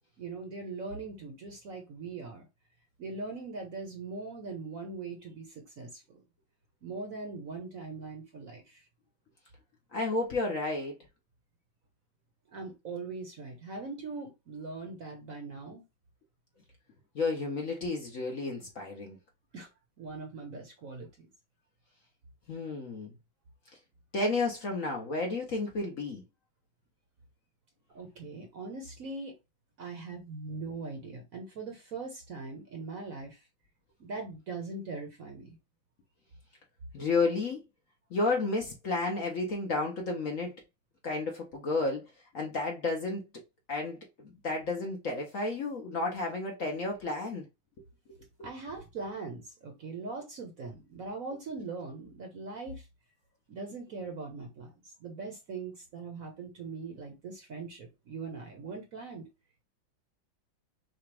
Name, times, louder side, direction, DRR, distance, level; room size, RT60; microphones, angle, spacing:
voice 1, 0.2-2.4 3.0-6.2 6.8-8.8 12.5-15.8 19.5-19.7 20.0-21.3 27.9-29.3 29.8-33.4 34.0-35.6 48.4-52.9 53.5-59.3, right 3 dB, 55° right, 1.1 m, -41 dB
voice 2, 9.9-11.0 17.1-19.2 22.5-23.1 24.1-26.2 36.9-37.6 38.1-40.5 41.0-42.1 42.3-43.2 43.7-47.5 48.4-48.5, left 3 dB, 50° left, 1.0 m, -32 dB
5.9 x 2.4 x 3.3 m
omnidirectional pair, 2.2 m